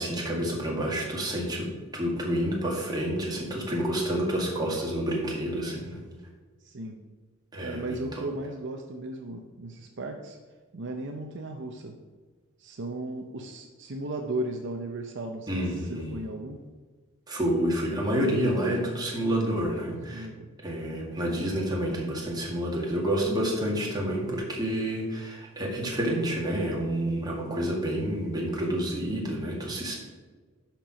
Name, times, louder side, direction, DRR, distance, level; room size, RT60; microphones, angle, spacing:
voice 1, 0.0-6.0 7.5-8.0 15.5-16.2 17.3-20.3 20.6-29.9, right 1 dB, 20° right, -2 dB, 1.9 m, -29 dB
voice 2, 6.6-7.0 7.6-10.4 10.7-12.0 12.6-16.6 20.1-20.5, right 2 dB, 55° right, 4 dB, 0.7 m, -36 dB
10.5 x 4.6 x 5.1 m, 1.4 s
head